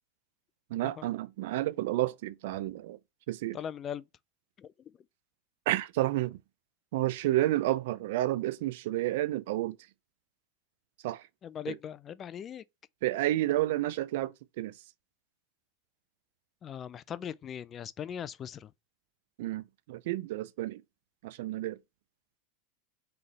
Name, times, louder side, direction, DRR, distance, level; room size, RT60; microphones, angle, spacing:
voice 1, 0.7-3.0 3.3-3.6 5.7-6.4 6.9-9.8 11.0-11.2 11.7-11.8 13.0-14.7 19.4-20.8 21.2-21.8, right 15 dB, 70° right, 0.4 m, -30 dB
voice 2, 3.5-4.0 4.6-4.7 11.4-12.6 16.6-18.7, left 8 dB, 35° left, 0.3 m, -40 dB
3.8 x 3.3 x 4.0 m
hypercardioid pair, 105°, 0 cm